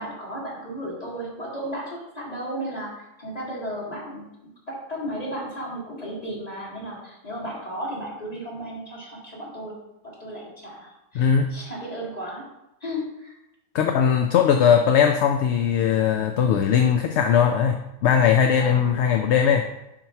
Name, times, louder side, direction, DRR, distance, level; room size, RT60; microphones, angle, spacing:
voice 1, 0.0-4.3 4.7-9.8 10.2-12.4 12.8-13.4 18.6-18.9, equal, 30° left, -5 dB, 2.2 m, -34 dB
voice 2, 11.1-11.5 13.7-19.7, left 7 dB, 65° left, 5 dB, 0.8 m, -19 dB
7.4 x 3.0 x 5.6 m, 0.89 s
omnidirectional pair, 1.4 m